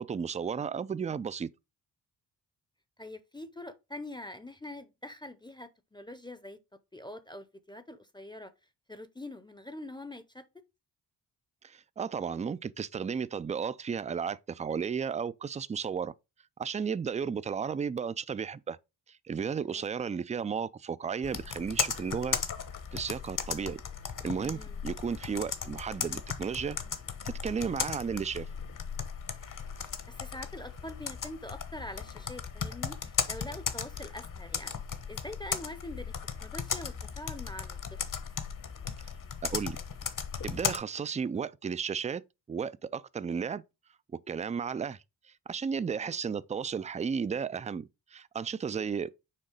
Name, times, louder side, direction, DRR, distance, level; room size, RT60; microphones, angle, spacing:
voice 1, 0.0-1.5 11.6-16.1 16.6-18.8 19.1-22.4 22.9-23.8 24.2-26.8 27.2-28.5 39.4-39.8 40.4-42.2 42.5-43.6 44.3-45.0 45.5-49.1, right 6 dB, 20° right, 0.3 m, -34 dB
voice 2, 3.0-6.6 6.9-8.5 8.9-10.4 19.6-19.9 24.4-24.8 30.1-34.7 35.1-36.1 36.4-38.0 45.9-46.2 48.7-48.9, left 1 dB, 10° left, 0.7 m, -44 dB
Computer keyboard, 21.2-40.8, left 7 dB, 50° left, 1.1 m, -36 dB
6.5 x 4.0 x 3.7 m
cardioid pair, 80°, 42 cm